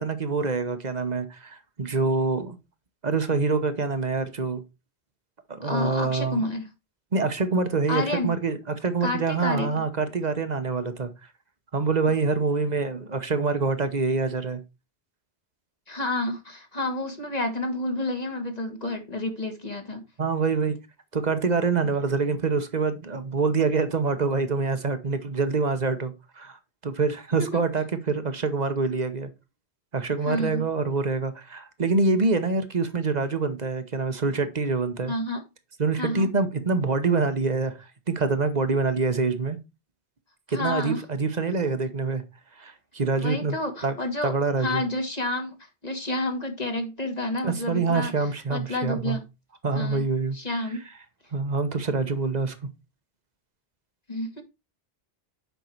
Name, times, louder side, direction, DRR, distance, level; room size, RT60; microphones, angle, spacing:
voice 1, 0.0-2.6 3.0-4.6 5.5-6.5 7.1-11.1 11.7-14.6 20.2-20.8 21.1-29.3 29.9-35.1 35.8-39.6 40.5-42.2 42.6-43.6 43.8-44.0 44.2-44.8 47.4-49.2 49.6-50.4 50.6-50.7 51.3-52.5, right 4 dB, 40° right, 1.1 m, -26 dB
voice 2, 5.6-6.7 7.9-8.3 9.0-9.8 15.9-20.0 27.4-27.6 30.2-30.6 35.1-35.4 36.0-36.3 40.5-41.0 43.2-44.3 44.6-45.5 45.8-49.2 49.7-50.0 50.3-50.8 54.1-54.4, left 2 dB, 40° left, 1.6 m, -29 dB
8.1 x 5.6 x 4.5 m
omnidirectional pair, 1.1 m